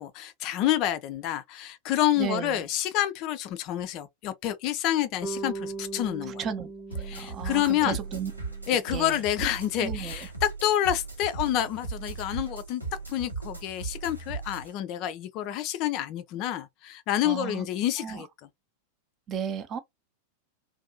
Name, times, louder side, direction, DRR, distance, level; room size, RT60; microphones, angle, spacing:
voice 1, 0.0-6.4 7.1-8.0 8.7-12.8 13.1-18.3, left 12 dB, 40° left, 0.3 m, -28 dB
voice 2, 2.2-2.7 6.3-8.3 8.7-9.2 9.8-10.3 17.2-17.7 18.0-18.3 19.3-19.8, right 7 dB, 30° right, 0.5 m, -34 dB
Bass guitar, 5.2-9.3, right 3 dB, 5° left, 0.8 m, -40 dB
sound 1, 6.9-14.7, right 4 dB, 90° right, 0.9 m, -37 dB
2.6 x 2.3 x 2.5 m
figure-of-eight pair, 90°, 0 cm